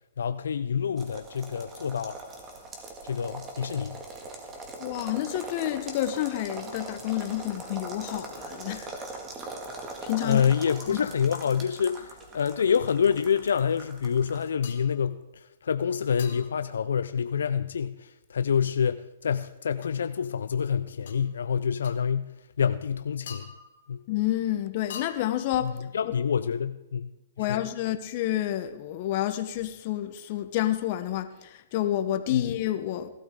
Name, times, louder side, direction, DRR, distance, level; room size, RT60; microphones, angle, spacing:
voice 1, 0.2-2.2 3.0-4.0 10.2-23.5 23.9-24.0 25.6-27.7 32.3-32.6, left 7 dB, 85° left, 0.5 m, -27 dB
sound 1, 1.0-14.5, right 2 dB, 20° right, 1.9 m, -41 dB
voice 2, 4.8-8.9 10.0-10.5 10.9-11.0 24.1-25.9 27.4-33.1, left 13 dB, 40° left, 1.0 m, -29 dB
sound 2, 14.6-15.0 16.2-16.6 19.8-19.9 21.1-21.2 21.8-22.0 23.3-23.9 24.9-25.6, left 7 dB, 60° left, 1.9 m, -43 dB
17.0 x 12.5 x 3.7 m
hypercardioid pair, 145°, 0 cm